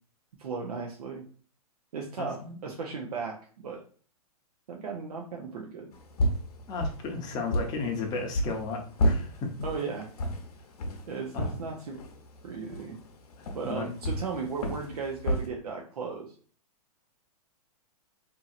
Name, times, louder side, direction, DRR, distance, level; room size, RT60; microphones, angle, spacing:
voice 1, 0.4-1.2 1.9-3.8 4.7-5.9 9.6-10.1 11.1-12.0 12.4-13.0 13.5-16.3, right 5 dB, 85° right, 0 dB, 0.6 m, -36 dB
voice 2, 2.2-2.6 6.7-9.5 11.3-11.5 13.4-13.9, left 4 dB, 20° left, 2 dB, 0.6 m, -34 dB
sound 1, 5.9-15.5, equal, 75° left, 0.7 m, -33 dB
2.9 x 2.7 x 2.4 m, 0.43 s
hypercardioid pair, 135°, 19 cm